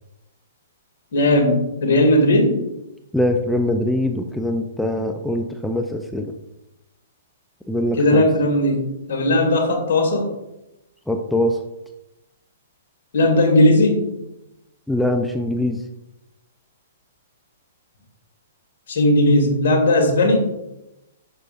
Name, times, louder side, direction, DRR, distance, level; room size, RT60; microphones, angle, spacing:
voice 1, 1.1-2.6 8.0-10.3 13.1-14.0 18.9-20.5, left 1 dB, 65° left, 1 dB, 1.9 m, -17 dB
voice 2, 3.1-6.3 7.7-8.3 11.1-11.6 14.9-15.8, left 1 dB, ahead, 5 dB, 0.4 m, -22 dB
6.6 x 6.3 x 2.4 m, 0.93 s
hypercardioid pair, 125°, 0 cm